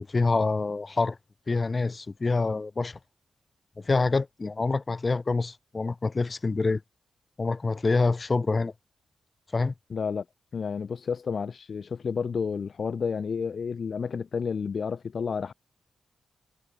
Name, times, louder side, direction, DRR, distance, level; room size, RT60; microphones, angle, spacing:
voice 1, 0.1-1.2 1.5-3.0 3.8-6.8 7.4-8.7 9.5-9.7, left 3 dB, 30° left, 0.7 m, -26 dB
voice 2, 9.9-10.2 10.5-15.5, left 6 dB, 55° left, 4.5 m, -30 dB
cardioid pair, 95°, 0 cm